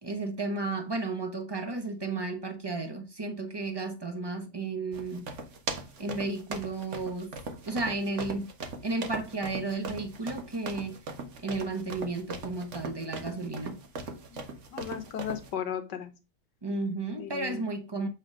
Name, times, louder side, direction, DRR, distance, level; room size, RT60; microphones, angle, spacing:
voice 1, 0.0-5.3 6.0-7.3 7.6-8.5 8.8-11.0 11.4-13.8 16.6-18.1, right 3 dB, 20° right, 0.8 m, -33 dB
sound 1, 4.9-15.5, right 3 dB, 50° right, 1.2 m, -39 dB
voice 2, 14.3-16.1 17.2-17.6, left 8 dB, 75° left, 1.6 m, -36 dB
8.1 x 3.4 x 4.9 m
omnidirectional pair, 1.9 m